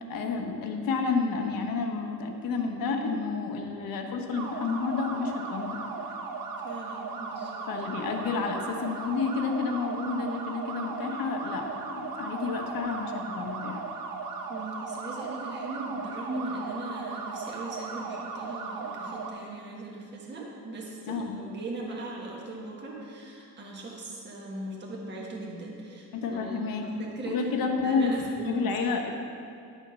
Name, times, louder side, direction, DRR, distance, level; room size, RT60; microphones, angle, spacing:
voice 1, 0.0-5.9 7.7-13.8 21.1-21.4 26.1-29.1, left 4 dB, 70° left, 3 dB, 1.3 m, -30 dB
sound 1, 4.3-19.3, right 4 dB, 65° right, 1.2 m, -37 dB
voice 2, 6.6-7.6 14.5-28.7, right 2 dB, 30° right, -3 dB, 1.5 m, -39 dB
11.0 x 7.2 x 5.7 m, 2.4 s
cardioid pair, 175°, 35 cm